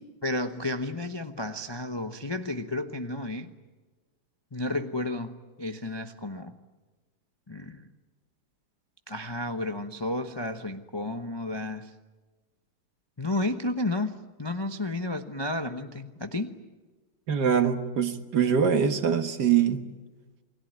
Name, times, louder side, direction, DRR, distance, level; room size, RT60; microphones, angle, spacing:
voice 1, 0.2-3.5 4.5-6.6 7.5-7.9 9.1-11.9 13.2-16.5, left 2 dB, 25° left, 0.5 m, -32 dB
voice 2, 17.3-19.8, right 7 dB, 55° right, 1.9 m, -23 dB
28.5 x 21.0 x 9.4 m
omnidirectional pair, 2.3 m